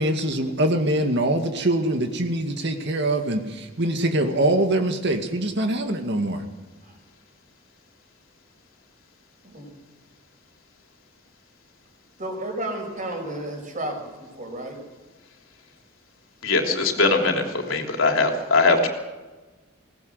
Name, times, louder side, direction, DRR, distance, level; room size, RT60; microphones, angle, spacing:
voice 1, 0.0-6.4, right 1 dB, 60° right, 5 dB, 2.0 m, -23 dB
voice 2, 12.2-14.8, right 1 dB, 40° right, 3 dB, 5.5 m, -32 dB
voice 3, 16.4-18.9, left 3 dB, 80° left, 3 dB, 3.4 m, -21 dB
21.0 x 18.0 x 7.9 m, 1.2 s
head